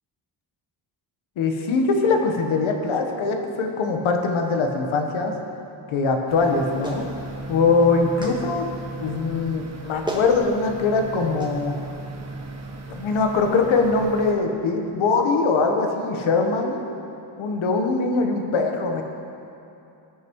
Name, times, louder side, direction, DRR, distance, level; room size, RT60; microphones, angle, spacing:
voice 1, 1.4-5.3 5.9-7.0 7.5-8.7 9.0-11.7 12.9-16.9 17.4-19.0, left 4 dB, 75° left, 4 dB, 1.2 m, -22 dB
sound 1, 6.3-14.3, right 2 dB, 35° right, 1.1 m, -37 dB
Clapping, 6.8-7.1 8.2-8.4 9.6-9.7 10.1-10.3 11.4-11.5, right 1 dB, 10° right, 1.5 m, -31 dB
17.5 x 6.2 x 3.1 m, 2.7 s
cardioid pair, 70°, 48 cm